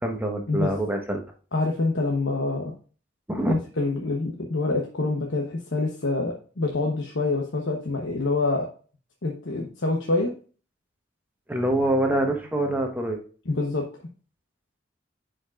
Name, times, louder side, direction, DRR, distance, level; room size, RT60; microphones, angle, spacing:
voice 1, 0.0-1.2 3.3-3.5 11.5-13.2, right 1 dB, 10° right, 2 dB, 1.1 m, -25 dB
voice 2, 1.5-2.7 3.5-8.7 9.2-10.3 13.5-13.9, left 3 dB, 90° left, 0 dB, 1.0 m, -26 dB
10.0 x 5.1 x 2.5 m, 0.40 s
head